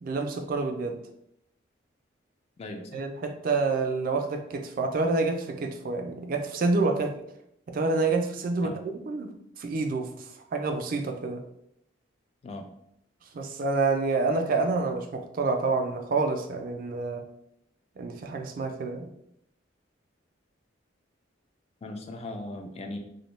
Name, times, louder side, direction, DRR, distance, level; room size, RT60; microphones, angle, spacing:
voice 1, 0.0-1.0 2.9-7.1 7.7-10.1 10.5-11.4 13.3-17.2 18.0-19.1, right 3 dB, 45° right, 5 dB, 0.3 m, -28 dB
voice 2, 2.6-3.0 8.6-8.8 12.4-12.7 21.8-23.0, left 2 dB, 30° left, 4 dB, 0.3 m, -38 dB
2.6 x 2.1 x 3.0 m, 0.75 s
head